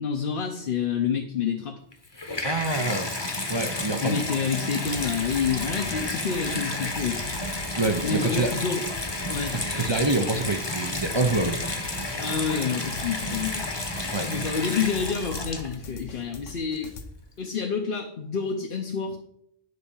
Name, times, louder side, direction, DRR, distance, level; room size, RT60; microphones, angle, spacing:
voice 1, 0.0-1.8 4.0-7.3 8.0-8.8 9.3-9.6 12.2-13.7 14.2-16.9 17.4-19.2, left 6 dB, 50° left, 2 dB, 0.9 m, -28 dB
Water tap faucet / Bathtub (filling or washing), 1.9-16.0 16.8-16.9, left 2 dB, 25° left, 1.0 m, -31 dB
voice 2, 2.4-3.1 3.5-4.3 7.8-8.5 9.5-11.6 14.1-14.3, right 2 dB, 30° right, 5 dB, 0.5 m, -26 dB
sound 1, 4.8-17.0, left 2 dB, 85° left, 1.3 m, -42 dB
9.5 x 4.2 x 7.1 m, 0.74 s
omnidirectional pair, 1.2 m